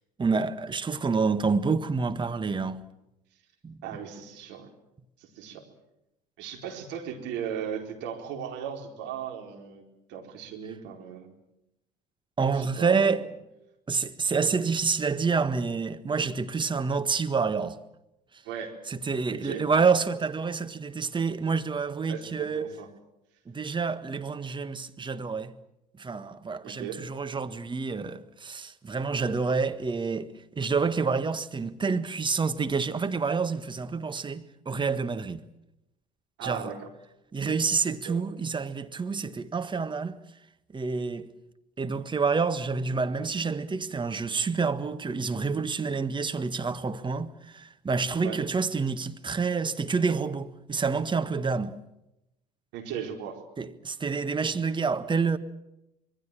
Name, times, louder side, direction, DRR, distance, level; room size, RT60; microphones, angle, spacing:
voice 1, 0.2-2.8 3.6-3.8 12.4-13.2 13.9-17.8 18.9-22.7 23.5-25.5 26.0-35.4 36.4-36.7 37.3-40.2 40.7-41.3 41.8-51.8 53.6-55.4, right 4 dB, 20° right, 1.6 m, -28 dB
voice 2, 3.8-4.7 5.2-5.6 6.4-9.8 10.1-11.3 12.5-13.1 18.4-18.7 19.3-19.6 22.1-22.9 26.6-27.0 36.4-36.9 38.0-38.2 48.2-48.4 52.7-53.4, right 8 dB, 60° right, 4.5 m, -37 dB
26.0 x 21.5 x 7.5 m
figure-of-eight pair, 60°, 21 cm